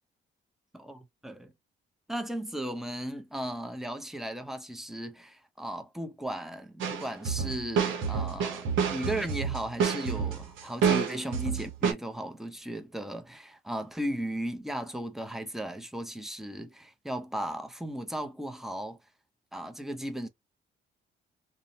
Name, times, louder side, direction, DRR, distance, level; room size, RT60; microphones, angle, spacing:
voice 1, 0.7-1.5 2.1-19.0 19.5-20.3, right 1 dB, ahead, 0.6 m, -36 dB
sound 1, 6.8-11.9, right 7 dB, 75° right, 0.8 m, -28 dB
2.7 x 2.1 x 2.7 m
cardioid pair, 90°, 20 cm